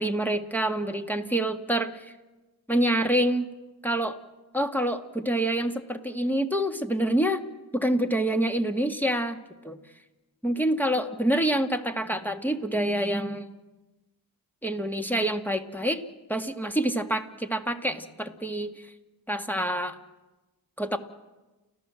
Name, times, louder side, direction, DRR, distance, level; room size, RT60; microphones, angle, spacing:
voice 1, 0.0-2.1 2.7-3.5 3.8-4.2 4.5-7.4 7.7-9.4 9.6-9.8 10.4-13.5 14.6-16.0 16.3-18.7 19.3-20.0 20.8-21.0, right 1 dB, 5° left, 3 dB, 2.2 m, -26 dB
30.0 x 14.5 x 7.8 m, 1.1 s
cardioid pair, 45°, 43 cm